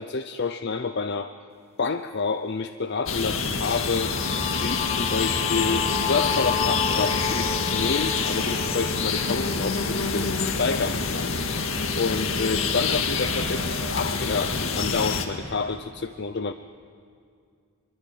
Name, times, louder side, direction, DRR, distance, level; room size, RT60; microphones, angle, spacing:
voice 1, 0.0-1.4 1.8-11.7 12.0-16.5, left 4 dB, 50° left, 9 dB, 0.6 m, -29 dB
sound 1, 3.1-15.3, left 4 dB, 70° left, 2.0 m, -27 dB
sound 2, 3.8-11.7, left 5 dB, 30° left, 1.4 m, -32 dB
sound 3, 5.8-15.8, right 2 dB, 75° right, 6.1 m, -45 dB
24.0 x 23.0 x 9.2 m, 2.3 s
head